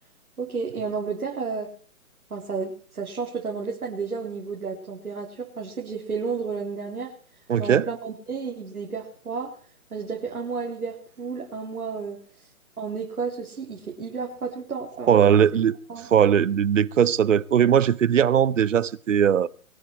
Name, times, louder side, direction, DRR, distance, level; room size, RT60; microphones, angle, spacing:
voice 1, 0.4-1.7 2.3-7.1 7.6-9.6 9.9-12.2 12.8-15.6 15.9-16.1, right 5 dB, 85° right, 4.0 m, -32 dB
voice 2, 7.5-7.9 15.1-15.7 16.1-19.5, right 8 dB, 60° right, 0.8 m, -19 dB
22.0 x 12.0 x 4.6 m
hypercardioid pair, 160°, 43 cm